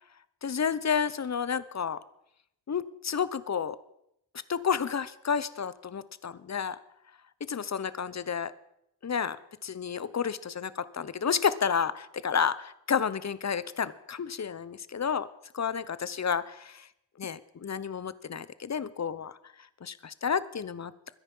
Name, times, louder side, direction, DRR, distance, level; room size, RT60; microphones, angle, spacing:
voice 1, 0.4-2.0 2.7-3.8 4.5-6.8 7.5-8.5 9.0-9.4 9.6-15.3 15.5-16.9 17.2-19.4 19.8-20.9, left 7 dB, 40° left, 16 dB, 0.8 m, -31 dB
22.5 x 10.5 x 5.5 m, 0.79 s
wide cardioid pair, 105°, 43 cm